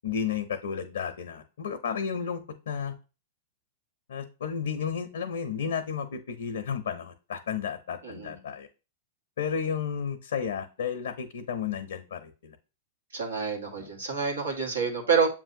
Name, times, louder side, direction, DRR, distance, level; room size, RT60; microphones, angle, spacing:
voice 1, 0.0-2.9 4.1-8.7 9.4-12.6 13.8-13.9, left 7 dB, 75° left, 7 dB, 0.5 m, -32 dB
voice 2, 8.0-8.3 13.1-15.3, right 5 dB, 85° right, 1 dB, 1.4 m, -27 dB
7.1 x 2.6 x 2.7 m, 0.32 s
hypercardioid pair, 110°, 0 cm